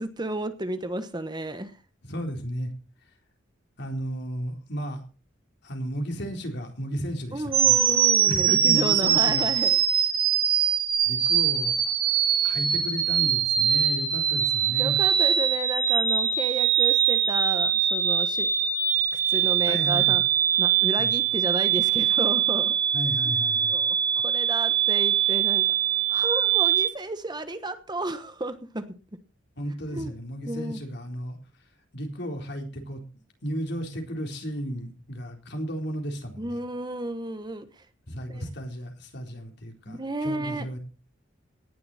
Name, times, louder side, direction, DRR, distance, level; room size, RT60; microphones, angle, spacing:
voice 1, 0.0-1.8 7.3-9.8 14.8-18.5 19.3-20.2 20.6-22.8 23.2-23.4 23.7-25.7 26.1-28.9 29.9-30.1 30.4-30.8 36.4-37.8 38.3-38.4 39.9-40.7, right 1 dB, 20° right, 10 dB, 1.2 m, -32 dB
voice 2, 2.0-2.7 3.8-5.0 5.6-7.8 8.3-9.5 11.1-11.9 12.4-15.0 19.7-20.2 21.0-21.1 22.9-23.8 29.6-31.4 31.9-33.0 33.4-36.6 38.1-40.8, equal, 60° left, 3 dB, 4.0 m, -34 dB
sound 1, 7.5-26.9, right 9 dB, 50° right, 3.1 m, -23 dB
18.0 x 11.0 x 4.2 m, 0.34 s
head